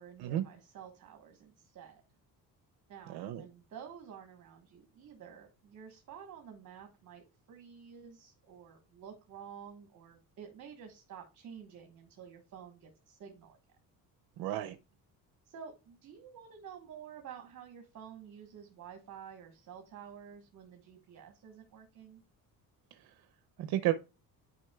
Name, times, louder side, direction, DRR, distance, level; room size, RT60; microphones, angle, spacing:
voice 1, 0.0-2.0 2.9-13.6 15.4-22.2, right 8 dB, 55° right, 4 dB, 1.2 m, -50 dB
voice 2, 3.1-3.4 14.4-14.8 22.9-23.0 23.6-23.9, right 14 dB, 85° right, 10 dB, 0.6 m, -32 dB
9.3 x 5.2 x 2.2 m, 0.29 s
cardioid pair, 130°, 37 cm